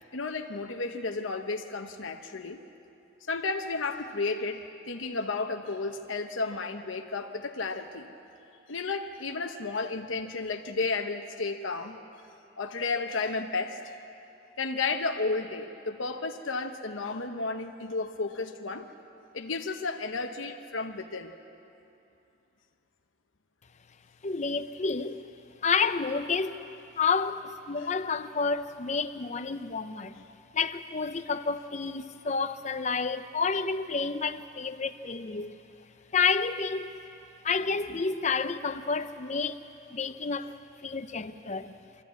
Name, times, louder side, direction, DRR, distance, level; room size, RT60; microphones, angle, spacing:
voice 1, 0.1-2.6 3.3-8.1 8.7-12.0 12.6-13.8 14.6-18.9 19.3-21.3 27.8-27.9, left 3 dB, 75° left, 1.0 m, -32 dB
voice 2, 24.2-25.2 25.6-26.6 27.0-30.2 30.5-35.6 36.1-36.9 37.4-39.6 39.9-41.8, left 5 dB, 35° left, 0.6 m, -30 dB
25.0 x 14.0 x 8.4 m
head